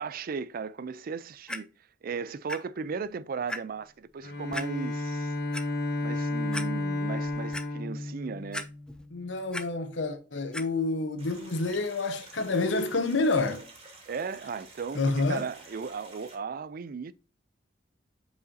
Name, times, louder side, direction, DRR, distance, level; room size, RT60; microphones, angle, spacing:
voice 1, 0.0-1.7 2.0-5.3 6.0-8.7 14.1-15.0 15.3-17.1, right 5 dB, 50° right, 0.4 m, -36 dB
Clock, 1.5-1.6 2.5-2.6 3.0-3.1 3.5-3.6 4.5-4.7 5.3-5.6 6.2-6.3 6.5-6.7 7.1-7.7 8.5-9.0 9.3-9.6 10.5-10.6 11.4-11.5, left 1 dB, 5° left, 0.5 m, -36 dB
Bowed string instrument, 4.2-9.0, left 2 dB, 55° left, 1.3 m, -32 dB
voice 2, 9.1-13.6 14.9-15.5, left 3 dB, 80° left, 1.0 m, -28 dB
sound 1, 11.2-16.4, right 2 dB, 30° right, 2.3 m, -51 dB
8.0 x 4.9 x 2.7 m
head